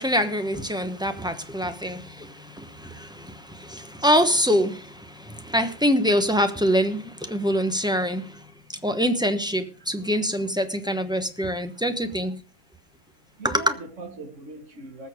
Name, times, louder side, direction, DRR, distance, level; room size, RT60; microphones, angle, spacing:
voice 1, 0.0-8.4 8.8-12.4 13.4-13.5, equal, 5° right, 0.4 m, -25 dB
voice 2, 0.7-1.0 1.7-1.9 3.8-4.0 7.6-7.7 9.8-10.5 11.6-11.9 13.3-15.1, right 2 dB, 40° right, 2.5 m, -42 dB
19.5 x 6.9 x 5.0 m
omnidirectional pair, 2.2 m